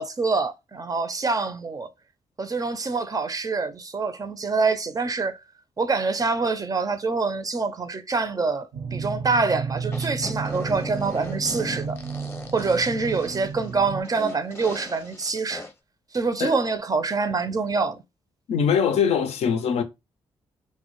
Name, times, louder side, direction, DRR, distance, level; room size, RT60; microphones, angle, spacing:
voice 1, 0.0-1.9 2.4-5.4 5.8-12.0 12.5-15.6 16.1-18.0, right 4 dB, 30° right, 0.4 m, -25 dB
sound 1, 8.7-14.0, right 5 dB, 80° right, 0.7 m, -32 dB
sound 2, 9.9-15.7, left 2 dB, 20° left, 0.7 m, -39 dB
voice 2, 18.5-19.8, left 7 dB, 65° left, 0.4 m, -22 dB
2.1 x 2.1 x 2.9 m
supercardioid pair, 50°, 11 cm